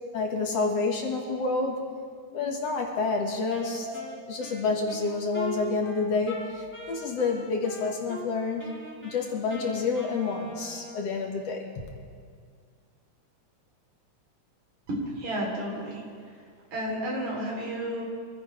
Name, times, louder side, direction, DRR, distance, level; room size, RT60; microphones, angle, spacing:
voice 1, 0.1-1.9 2.3-3.9 4.3-8.6 9.0-11.9, left 4 dB, 65° left, 1 dB, 2.5 m, -28 dB
Wind instrument woodwind instrument, 3.5-8.3 8.6-11.2, equal, 5° left, 1.1 m, -42 dB
voice 2, 14.9-16.3 16.7-18.0, right 1 dB, 75° right, -3 dB, 4.6 m, -32 dB
25.5 x 15.5 x 3.3 m, 2.1 s
omnidirectional pair, 3.3 m